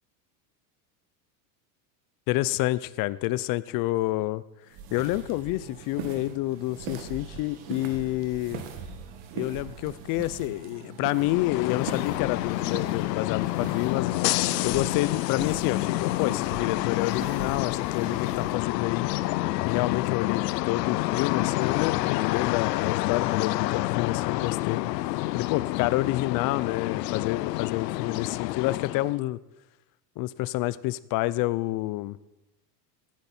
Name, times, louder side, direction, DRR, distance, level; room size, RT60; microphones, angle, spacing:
voice 1, 2.3-4.4 4.9-8.6 9.3-14.1 14.6-19.1 19.6-24.8 25.3-29.4 30.2-32.2, left 18 dB, 45° left, 18 dB, 0.6 m, -28 dB
sound 1, 4.7-18.6, right 6 dB, 60° right, 2.0 m, -41 dB
sound 2, 11.1-29.2, left 18 dB, 85° left, 0.6 m, -28 dB
15.5 x 10.5 x 4.4 m, 0.97 s
supercardioid pair, 120°, 48 cm